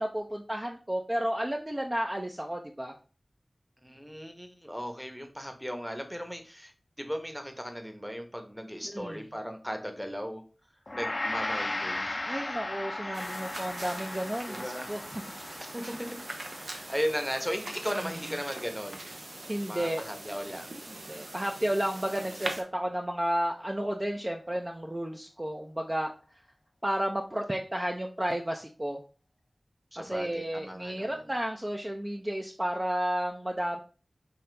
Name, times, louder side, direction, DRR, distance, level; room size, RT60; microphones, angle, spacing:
voice 1, 0.0-2.9 8.8-9.2 12.2-15.2 18.0-18.1 19.5-20.1 21.1-26.1 26.8-29.0 30.0-33.8, right 1 dB, 25° right, 2 dB, 0.5 m, -32 dB
voice 2, 3.8-6.7 7.0-10.4 10.9-12.4 13.0-13.6 14.0-14.2 14.5-14.9 15.6-15.9 16.5-19.1 19.7-20.7 22.1-22.5 29.9-31.2, equal, 5° right, 5 dB, 0.9 m, -37 dB
Gong, 10.9-20.2, left 2 dB, 45° left, 0.5 m, -38 dB
sound 1, 13.1-22.6, right 2 dB, 75° right, 0.7 m, -42 dB
5.6 x 2.8 x 3.3 m, 0.37 s
wide cardioid pair, 45°, 0 cm